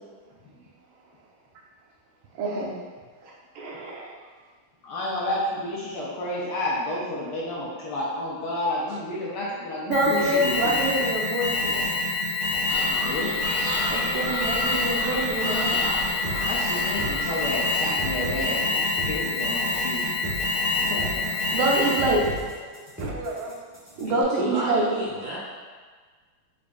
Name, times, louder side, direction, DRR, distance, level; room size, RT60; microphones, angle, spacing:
voice 1, 2.3-2.7 3.2-4.1 9.9-11.9 13.9-15.8 20.0-20.1 20.5-21.1 21.5-22.6 23.0-23.5 24.0-24.9, right 2 dB, 80° right, -2 dB, 1.4 m, -26 dB
voice 2, 4.8-10.5 12.8-13.4 15.8-15.9 16.4-20.0 20.9-21.3, left 1 dB, 75° left, -6 dB, 1.0 m, -31 dB
Alarm, 9.9-22.3, left 3 dB, 90° left, 1.6 m, -26 dB
sound 1, 12.7-18.6, left 1 dB, 55° left, 1.3 m, -34 dB
sound 2, 16.2-24.2, right 1 dB, 20° right, 0.3 m, -36 dB
voice 3, 23.9-25.4, right 1 dB, 65° right, -7 dB, 1.0 m, -32 dB
5.0 x 2.5 x 2.2 m, 1.5 s
omnidirectional pair, 2.3 m